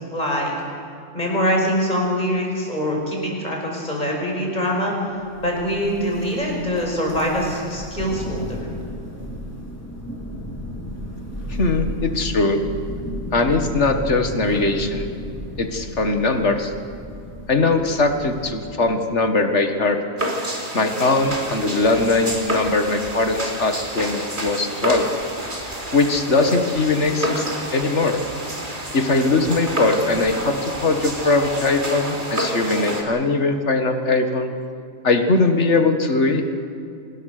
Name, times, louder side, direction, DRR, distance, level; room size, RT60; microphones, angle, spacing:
voice 1, 0.1-0.5 1.1-5.0 5.4-8.7, equal, 35° left, -1 dB, 5.9 m, -23 dB
Thunder, 5.2-18.8, equal, 10° left, 4.5 m, -34 dB
voice 2, 11.5-12.6 13.3-15.1 15.6-16.7 17.5-20.0 20.7-25.1 25.9-28.2 28.9-34.5 35.0-36.4, left 3 dB, 60° left, 6 dB, 2.0 m, -20 dB
sound 1, 20.2-33.0, right 1 dB, 40° right, 3.5 m, -29 dB
25.5 x 20.5 x 6.7 m, 2.5 s
omnidirectional pair, 1.3 m